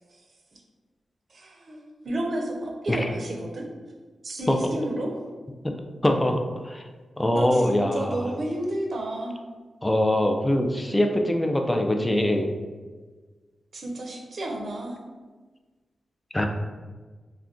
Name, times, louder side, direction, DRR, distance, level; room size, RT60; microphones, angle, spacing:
voice 1, 1.3-3.6 4.2-5.1 7.3-9.4 13.7-15.0, right 1 dB, 60° right, 0 dB, 0.6 m, -31 dB
voice 2, 6.0-6.8 7.2-8.2 9.8-12.5 16.3-16.5, left 1 dB, 15° left, 3 dB, 0.4 m, -23 dB
2.4 x 2.2 x 3.6 m, 1.4 s
cardioid pair, 65°, 0 cm